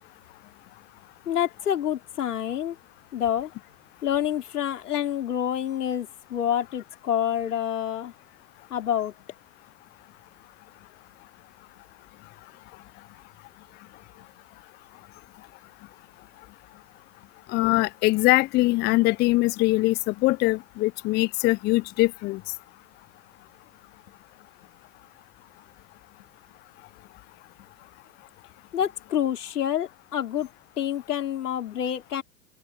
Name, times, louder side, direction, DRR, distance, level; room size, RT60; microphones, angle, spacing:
voice 1, 1.2-2.7 3.1-3.5 4.0-8.1 8.7-9.1 28.7-30.5 30.8-32.2, left 10 dB, 70° left, 4.9 m, -27 dB
voice 2, 17.5-22.4, left 20 dB, 20° left, 0.5 m, -22 dB
open air
figure-of-eight pair, 100°, 47 cm